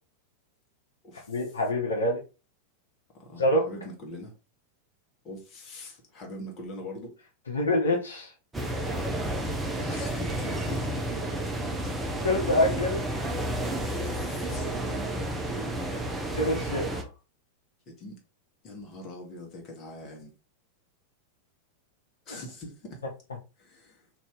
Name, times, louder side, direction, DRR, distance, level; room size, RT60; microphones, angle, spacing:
voice 1, 1.3-2.2 3.4-3.7 7.5-8.3 9.8-9.9 12.2-13.0 16.4-16.9 22.3-22.4, left 1 dB, 70° left, 0.8 m, -26 dB
voice 2, 3.2-4.3 5.2-7.1 9.9-10.9 11.7-12.0 13.9-16.0 17.9-18.2 18.6-20.3 22.3-23.0 23.6-24.1, left 1 dB, 30° left, 1.1 m, -43 dB
sound 1, 8.5-17.0, right 1 dB, 10° right, 0.6 m, -31 dB
2.7 x 2.6 x 3.4 m
figure-of-eight pair, 90°, 0 cm